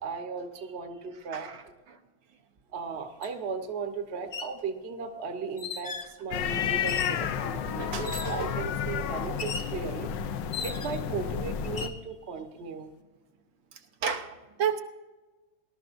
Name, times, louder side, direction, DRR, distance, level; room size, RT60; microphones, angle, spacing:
voice 1, 0.0-1.5 2.7-5.9 6.2-10.1 10.6-12.9, right 5 dB, 40° right, 6 dB, 1.1 m, -36 dB
sound 1, 3.2-3.3 4.2-4.6 5.6-6.1 6.9-7.3 8.0-8.5 9.4-9.7 10.5-11.1 11.6-12.0, left 5 dB, 45° left, 0.8 m, -37 dB
sound 2, 6.3-11.9, left 8 dB, 70° left, 1.2 m, -31 dB
voice 2, 7.8-8.6 14.0-14.8, right 7 dB, 75° right, 5 dB, 1.7 m, -32 dB
19.5 x 12.5 x 2.6 m, 1.2 s
omnidirectional pair, 2.3 m